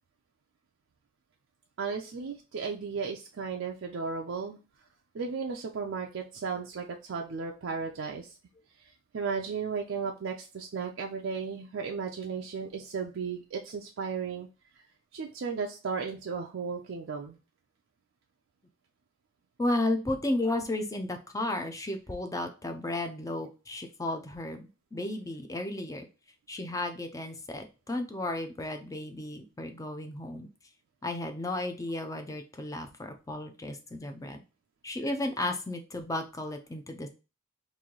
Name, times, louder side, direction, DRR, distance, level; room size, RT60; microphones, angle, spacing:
voice 1, 1.8-4.9 5.1-8.4 8.7-14.5 14.7-14.9 15.1-17.4, right 5 dB, 65° right, 1 dB, 0.4 m, -35 dB
voice 2, 19.6-26.1 26.5-30.5 31.0-34.4 34.8-37.1, left 1 dB, 15° left, 6 dB, 0.5 m, -33 dB
3.1 x 2.6 x 3.8 m, 0.31 s
head